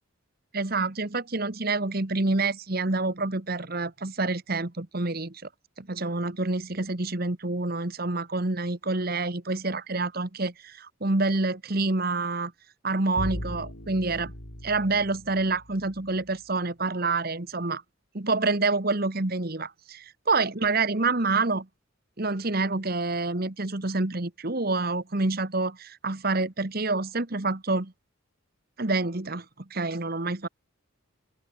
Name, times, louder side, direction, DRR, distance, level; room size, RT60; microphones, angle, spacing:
voice 1, 0.5-5.5 5.8-12.5 12.8-14.3 14.6-17.8 18.1-21.7 22.2-27.9 28.8-29.4 29.7-30.5, right 3 dB, 45° right, 1.4 m, -27 dB
Bowed string instrument, 13.2-16.2, equal, 60° left, 6.0 m, -38 dB
open air
head